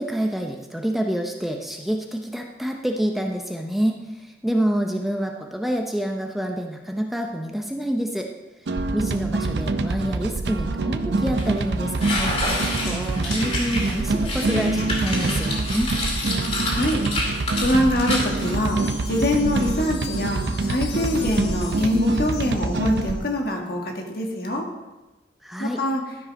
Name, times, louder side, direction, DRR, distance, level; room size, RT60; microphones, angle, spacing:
voice 1, 0.0-8.3 8.9-12.4 12.8-15.9 25.4-25.8, equal, ahead, 2 dB, 0.6 m, -27 dB
sound 1, 8.7-23.2, right 3 dB, 75° right, 0.5 m, -25 dB
sound 2, 11.4-11.5 12.0-18.5, left 2 dB, 35° left, 2.3 m, -28 dB
voice 2, 16.6-18.8 19.0-24.7 25.6-26.0, left 1 dB, 60° left, 1 dB, 1.7 m, -24 dB
Wind chime, 18.0-23.4, left 6 dB, 80° left, 1.3 m, -41 dB
12.5 x 5.4 x 5.3 m, 1.1 s
head